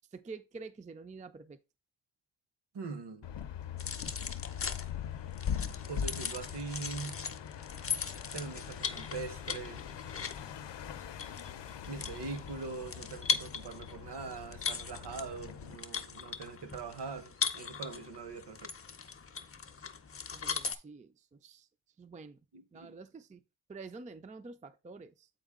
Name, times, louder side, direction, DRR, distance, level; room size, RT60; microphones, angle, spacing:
voice 1, 0.1-1.6 20.3-21.7 22.0-22.4 22.7-23.4 23.7-25.3, right 4 dB, 20° right, 0.4 m, -48 dB
voice 2, 2.7-3.3 5.9-7.2 8.3-9.9 11.9-18.7 22.5-23.0, right 4 dB, 65° right, 1.1 m, -42 dB
sound 1, 3.2-15.8, left 8 dB, 70° left, 0.6 m, -42 dB
sound 2, 3.8-20.8, left 6 dB, 30° left, 0.6 m, -39 dB
8.0 x 4.5 x 3.6 m
wide cardioid pair, 155°, 44 cm